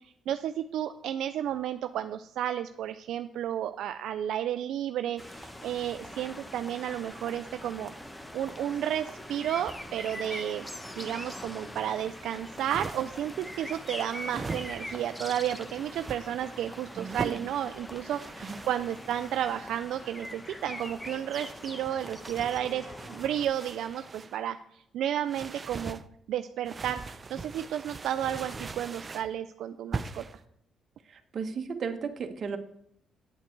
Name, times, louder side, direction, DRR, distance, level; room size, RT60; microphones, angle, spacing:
voice 1, 0.0-7.9 8.3-10.7 11.0-26.0 26.3-30.2, right 10 dB, 80° right, 9 dB, 0.4 m, -32 dB
sound 1, 5.2-23.5, left 1 dB, 10° left, 1.2 m, -43 dB
sound 2, 12.4-13.3 14.2-15.1 15.8-16.2 17.0-17.4 18.2-19.6 20.6-24.4 25.3-26.0 26.6-29.3 29.9-30.4, right 4 dB, 30° right, 0.6 m, -41 dB
voice 2, 16.9-17.4 18.4-18.6 31.1-32.6, right 6 dB, 50° right, 7 dB, 1.3 m, -35 dB
9.1 x 8.1 x 4.6 m, 0.70 s
cardioid pair, 90°, 0 cm